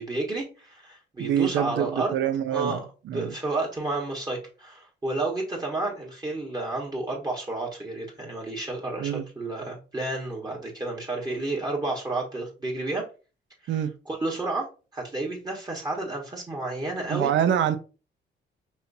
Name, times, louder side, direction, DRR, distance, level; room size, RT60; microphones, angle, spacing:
voice 1, 0.0-2.2 2.5-2.9 3.1-13.1 13.6-13.8 14.0-14.7 14.9-17.3, right 2 dB, 20° right, 1.3 m, -31 dB
voice 2, 1.2-2.8 3.1-3.3 9.0-9.2 13.7-13.9 17.1-17.8, right 10 dB, 70° right, 0.6 m, -25 dB
5.5 x 2.9 x 2.7 m
cardioid pair, 90°, 20 cm